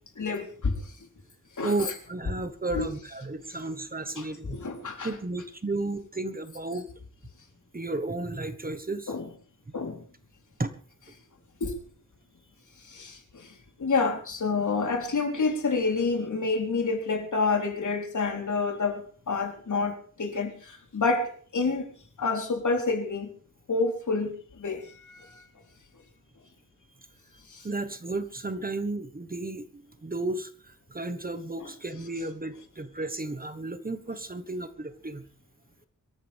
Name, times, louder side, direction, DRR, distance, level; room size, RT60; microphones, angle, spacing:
voice 1, 0.2-0.8 1.6-1.7 2.7-2.9 4.2-4.3 4.5-5.1 9.1-9.3 9.7-10.0 11.6-11.7 13.0-13.1 13.8-19.0 19.3-20.5 20.9-21.3 21.5-21.9 22.2-23.3 23.7-24.3 24.6-24.8 31.6-31.7, left 4 dB, 65° left, 3.8 m, -27 dB
voice 2, 1.6-4.6 5.0-6.8 7.7-9.1 10.6-10.7 27.6-30.5 30.9-35.2, right 2 dB, 25° right, 1.4 m, -33 dB
25.0 x 14.0 x 3.6 m
wide cardioid pair, 125°, 32 cm